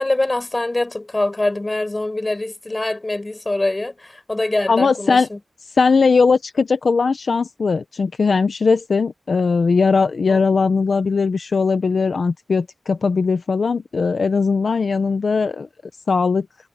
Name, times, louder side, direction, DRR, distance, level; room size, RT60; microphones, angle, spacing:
voice 1, 0.0-5.4 10.3-10.4, left 2 dB, 25° left, 6.0 m, -24 dB
voice 2, 4.7-5.3 5.7-15.7 16.1-16.5, left 4 dB, 70° left, 0.8 m, -19 dB
wide cardioid pair, 100°, 0 cm